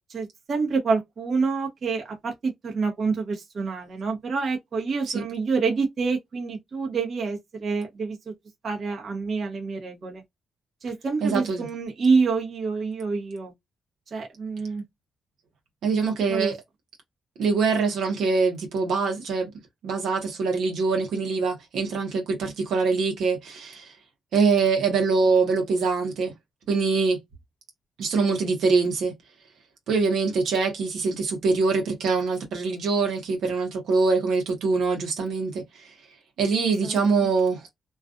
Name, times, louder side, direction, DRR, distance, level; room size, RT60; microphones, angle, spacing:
voice 1, 0.1-8.3 8.6-10.2 10.8-13.5 14.1-14.8 16.3-16.5 36.7-37.3, right 4 dB, 55° right, 0.9 m, -27 dB
voice 2, 11.2-11.7 15.8-16.6 17.4-19.5 19.8-23.9 24.3-26.3 26.7-27.2 28.0-29.1 29.9-35.9 36.4-37.7, right 4 dB, 80° right, 0.9 m, -24 dB
2.4 x 2.3 x 2.4 m
cardioid pair, 80°, 0 cm